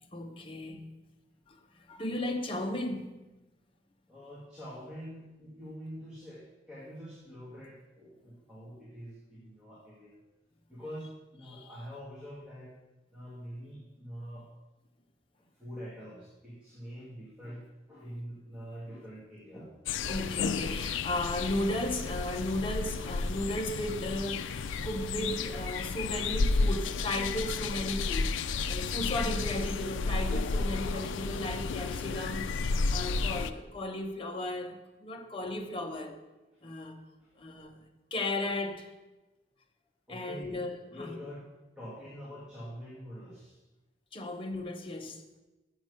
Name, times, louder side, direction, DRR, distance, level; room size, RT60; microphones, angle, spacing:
voice 1, 0.1-0.8 1.5-1.6 1.9-3.1 11.5-11.7 20.0-36.2 36.6-37.0 37.4-37.8 38.1-38.9 40.1-41.1 44.1-45.2, left 1 dB, 30° left, 0.8 m, -35 dB
voice 2, 4.1-10.2 10.7-12.7 13.1-14.5 15.5-19.7 37.2-37.6 40.1-41.5 41.8-43.6 44.1-44.2, equal, 5° right, 1.8 m, -45 dB
sound 1, 19.9-33.5, left 4 dB, 90° left, 0.4 m, -32 dB
7.2 x 6.3 x 6.3 m
head